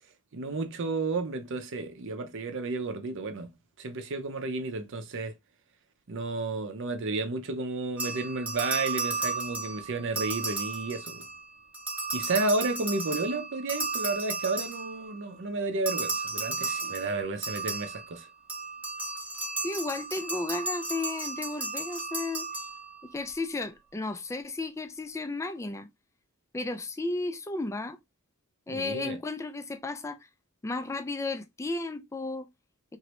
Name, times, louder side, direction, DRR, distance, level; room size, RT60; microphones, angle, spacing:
voice 1, 0.3-3.5 3.8-5.3 6.1-11.3 12.1-18.3 28.7-29.2, right 3 dB, 55° right, 0.6 m, -32 dB
sound 1, 8.0-11.4 11.7-15.2 15.9-23.1, right 3 dB, 5° right, 0.7 m, -34 dB
voice 2, 19.6-22.5 23.0-25.9 26.5-28.0 28.7-30.2 30.6-32.5, left 2 dB, 15° left, 0.3 m, -34 dB
3.0 x 2.6 x 2.9 m
head